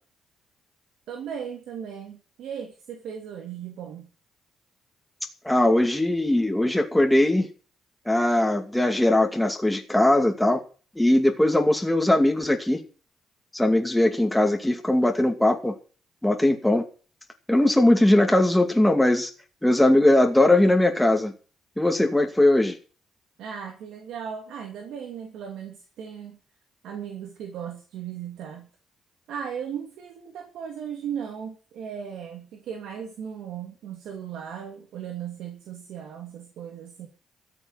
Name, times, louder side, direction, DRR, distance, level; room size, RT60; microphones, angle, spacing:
voice 1, 1.1-4.1 23.4-26.4 26.8-28.7 29.3-37.1, right 8 dB, 80° right, 2 dB, 2.8 m, -37 dB
voice 2, 5.4-7.5 8.1-10.6 11.0-12.8 13.5-15.7 16.2-16.8 17.5-19.3 19.6-21.3 21.8-22.8, left 1 dB, 5° left, 3 dB, 2.3 m, -20 dB
13.5 x 7.3 x 9.1 m, 0.38 s
cardioid pair, 90°, 0 cm